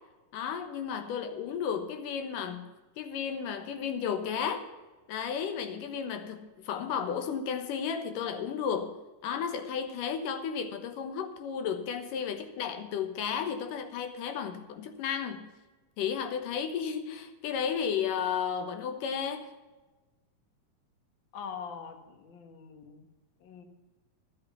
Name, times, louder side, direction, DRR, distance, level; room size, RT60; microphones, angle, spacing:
voice 1, 0.3-2.6 3.0-4.6 5.1-8.9 9.2-15.5 16.0-19.5, left 7 dB, 90° left, 7 dB, 2.8 m, -33 dB
voice 2, 21.3-23.1 23.4-23.6, left 6 dB, 45° left, 6 dB, 1.8 m, -43 dB
12.5 x 8.2 x 8.0 m, 1.2 s
omnidirectional pair, 3.6 m